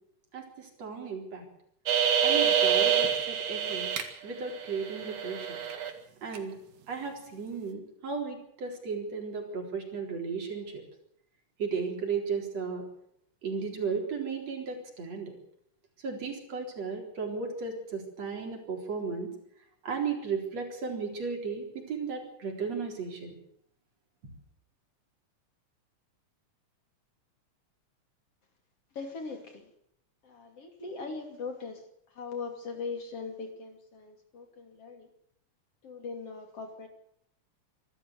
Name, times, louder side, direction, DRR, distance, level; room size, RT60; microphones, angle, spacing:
voice 1, 0.3-1.4 2.2-3.9 4.2-5.6 6.2-6.6 6.9-10.8 11.6-12.8 13.4-15.3 16.0-19.3 19.8-23.3, right 5 dB, 55° right, 2 dB, 5.1 m, -35 dB
sound 1, 1.9-4.0 4.4-5.9 6.3-6.4, right 8 dB, 75° right, 3.4 m, -27 dB
voice 2, 29.0-29.7 30.2-31.8 32.2-35.1 35.8-36.9, left 4 dB, 50° left, 4 dB, 3.6 m, -40 dB
25.5 x 13.5 x 8.0 m, 0.72 s
omnidirectional pair, 3.5 m